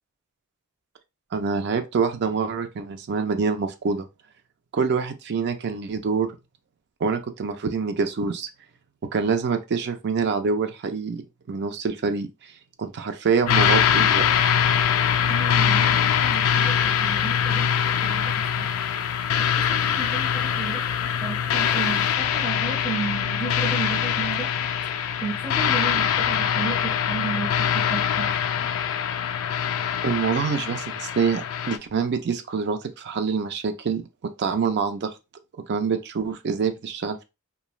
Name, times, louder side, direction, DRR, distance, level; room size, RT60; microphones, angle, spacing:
voice 1, 1.3-4.1 4.7-6.3 7.0-8.5 9.1-11.2 11.5-12.3 12.8-14.2 30.0-34.0 34.4-35.1 35.7-37.2, right 5 dB, 50° right, 0.4 m, -25 dB
sound 1, 13.5-31.8, left 8 dB, 70° left, 0.3 m, -23 dB
voice 2, 15.3-18.7 19.4-20.9 21.2-24.5 25.2-28.3, right 5 dB, 10° right, 0.8 m, -34 dB
3.0 x 2.3 x 2.3 m
head